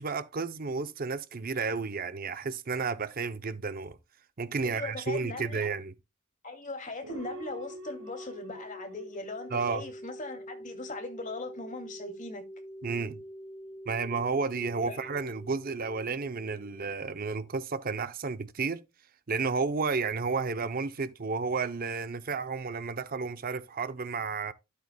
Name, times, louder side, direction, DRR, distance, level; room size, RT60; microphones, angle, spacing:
voice 1, 0.0-4.0 4.4-5.9 9.5-9.8 12.8-13.2 13.9-18.8 19.3-24.5, right 4 dB, 40° right, 0.6 m, -32 dB
voice 2, 4.6-5.7 6.4-12.5 14.8-15.1, left 2 dB, 35° left, 2.4 m, -39 dB
sound 1, 7.0-17.7, equal, 70° right, 2.9 m, -45 dB
12.5 x 8.1 x 2.2 m
head